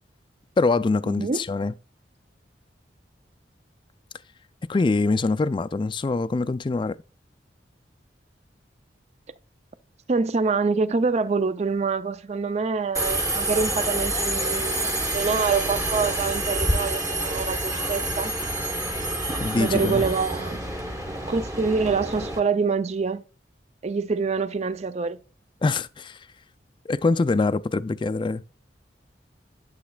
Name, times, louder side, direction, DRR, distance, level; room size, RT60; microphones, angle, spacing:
voice 1, 0.6-1.7 4.7-7.0 19.4-20.0 25.6-26.2 26.9-28.4, left 3 dB, 25° left, 0.3 m, -24 dB
voice 2, 1.1-1.4 10.1-18.3 19.6-20.6 21.3-23.2 23.8-25.2, right 4 dB, 40° right, 0.4 m, -25 dB
Subway metro underground, 12.9-22.4, right 1 dB, 20° right, 1.1 m, -27 dB
11.5 x 7.2 x 2.3 m
head